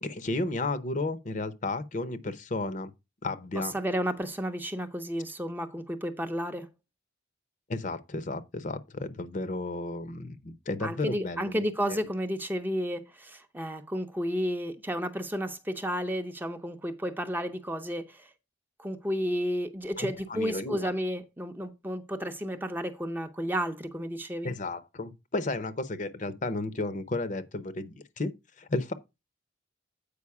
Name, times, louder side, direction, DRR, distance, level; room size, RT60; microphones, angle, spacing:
voice 1, 0.0-2.9 3.2-3.7 7.7-11.6 11.9-12.1 20.0-20.9 24.4-28.9, left 2 dB, 40° left, 0.7 m, -33 dB
voice 2, 3.7-6.7 10.8-18.3 18.8-24.5, equal, 10° right, 0.6 m, -32 dB
8.4 x 5.1 x 4.7 m
head